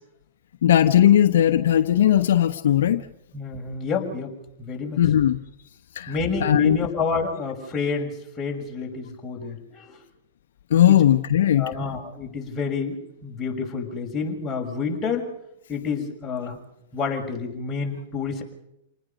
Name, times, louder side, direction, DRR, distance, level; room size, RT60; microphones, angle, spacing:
voice 1, 0.6-3.0 5.0-5.4 5.9-6.8 10.7-11.7, left 11 dB, 75° left, 8 dB, 1.2 m, -18 dB
voice 2, 3.3-4.3 4.6-5.0 6.1-10.0 10.8-11.0 11.6-15.3 15.7-16.6 16.9-18.4, left 5 dB, 20° left, -1 dB, 6.3 m, -29 dB
28.5 x 19.5 x 5.4 m, 0.83 s
hypercardioid pair, 125°, 0 cm